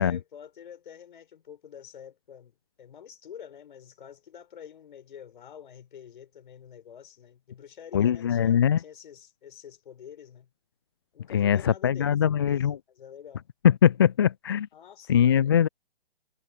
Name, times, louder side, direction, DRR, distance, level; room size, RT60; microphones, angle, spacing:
voice 1, 0.0-10.5 11.1-13.5 14.7-15.6, left 8 dB, 55° left, 6.0 m, -47 dB
voice 2, 7.9-8.8 11.3-12.8 13.6-14.7 15.1-15.7, left 9 dB, 25° left, 0.4 m, -21 dB
figure-of-eight pair, 130°, 31 cm